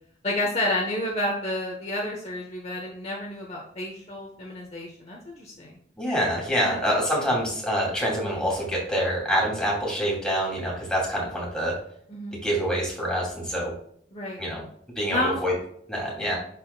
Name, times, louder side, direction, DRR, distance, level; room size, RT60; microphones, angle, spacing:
voice 1, 0.2-5.8 6.6-6.9 12.1-12.4 14.1-14.4 15.1-15.5, left 1 dB, 35° left, -1 dB, 1.0 m, -30 dB
voice 2, 6.0-11.7 12.4-13.7 14.4-14.6 15.0-15.5 15.9-16.4, equal, 5° left, -4 dB, 2.5 m, -26 dB
12.0 x 4.2 x 2.2 m, 0.64 s
head